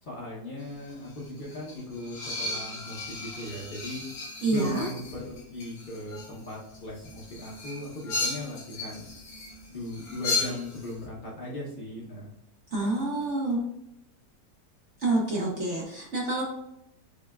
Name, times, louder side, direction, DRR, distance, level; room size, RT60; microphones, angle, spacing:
voice 1, 0.0-4.0 4.4-9.1 9.7-12.3 12.8-12.9, left 1 dB, 85° left, -4 dB, 0.4 m, -38 dB
sound 1, 0.6-10.9, left 3 dB, 60° left, 1.3 m, -36 dB
voice 2, 4.4-4.9 12.7-13.6 15.0-16.4, right 2 dB, 55° right, -3 dB, 0.8 m, -27 dB
5.3 x 2.2 x 2.2 m, 0.79 s
omnidirectional pair, 2.0 m